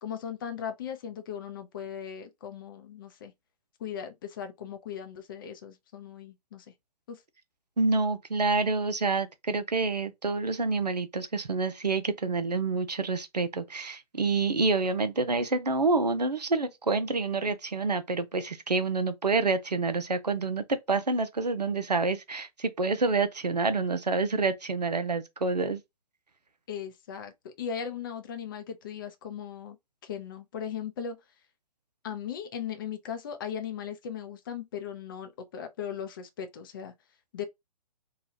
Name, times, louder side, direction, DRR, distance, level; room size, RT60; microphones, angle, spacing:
voice 1, 0.0-3.3 3.8-6.7 7.1-7.2 26.7-29.8 30.0-31.2 32.0-36.9 37.3-37.4, left 8 dB, 35° left, 0.5 m, -38 dB
voice 2, 7.8-25.8, right 3 dB, 85° right, 0.6 m, -28 dB
2.9 x 2.3 x 2.6 m
figure-of-eight pair, 125°, 20 cm